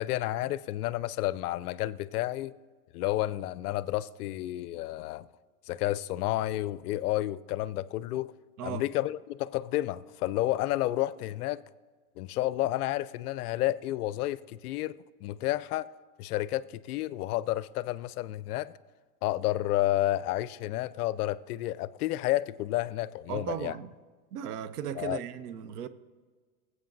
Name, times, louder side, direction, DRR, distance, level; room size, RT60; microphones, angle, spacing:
voice 1, 0.0-2.5 2.9-5.3 5.7-8.3 8.6-11.6 12.2-15.0 15.2-15.9 16.2-18.7 19.2-23.7 25.0-25.2, left 15 dB, 65° left, 0.5 m, -31 dB
voice 2, 23.3-23.9 24.3-25.9, right 9 dB, 70° right, 0.8 m, -36 dB
20.5 x 7.9 x 2.6 m
hypercardioid pair, 135°, 48 cm